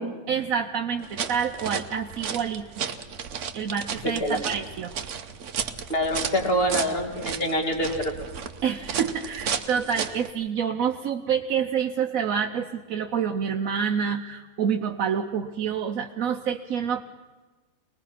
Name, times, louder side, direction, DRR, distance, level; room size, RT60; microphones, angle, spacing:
voice 1, 0.3-2.7 3.5-4.9 8.6-17.0, right 7 dB, 80° right, 3 dB, 1.3 m, -27 dB
sound 1, 1.0-10.3, right 7 dB, 65° right, 1.2 m, -34 dB
voice 2, 5.9-8.1, equal, 45° left, 3 dB, 2.7 m, -25 dB
23.0 x 20.0 x 5.9 m, 1.3 s
omnidirectional pair, 1.4 m